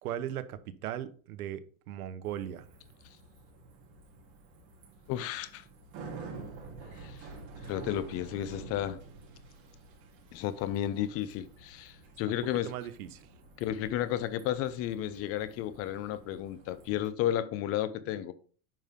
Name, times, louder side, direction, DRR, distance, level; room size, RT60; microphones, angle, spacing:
voice 1, 0.0-2.7 12.6-13.3, right 11 dB, 90° right, 1.1 m, -38 dB
Bicycle, 2.2-17.1, right 3 dB, 40° right, 3.3 m, -49 dB
voice 2, 5.1-5.6 7.0-7.3 7.7-9.0 10.3-12.7 13.6-18.3, left 11 dB, 35° left, 0.6 m, -33 dB
9.1 x 5.5 x 3.6 m
supercardioid pair, 145°, 42 cm